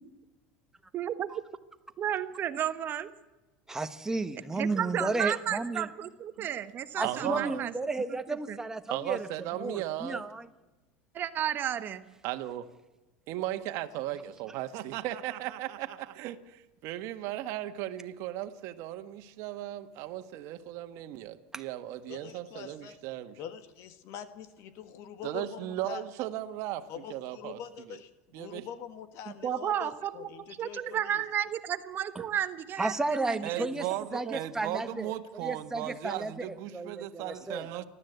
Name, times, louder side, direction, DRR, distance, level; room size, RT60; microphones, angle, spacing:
voice 1, 0.9-1.3 2.0-3.1 4.5-7.7 8.3-8.6 11.1-12.0 29.4-30.3 30.6-32.9 33.2-33.7 34.3-34.4, right 10 dB, 35° right, 11 dB, 1.1 m, -32 dB
voice 2, 3.7-5.9 7.0-9.3 9.6-10.5 21.5-21.6 32.1-32.2 32.8-33.9 34.1-35.1 35.4-37.7, right 2 dB, 10° right, 9 dB, 1.3 m, -33 dB
voice 3, 7.0-7.6 8.9-10.2 12.2-12.7 13.3-23.4 25.2-27.6 27.9-28.0 28.3-28.7 31.2-31.3 33.4-37.8, right 13 dB, 55° right, 8 dB, 1.7 m, -36 dB
voice 4, 22.1-23.0 23.4-26.0 26.9-31.2, left 8 dB, 55° left, 11 dB, 1.7 m, -44 dB
30.0 x 12.5 x 8.1 m, 1.1 s
supercardioid pair, 135°, 6 cm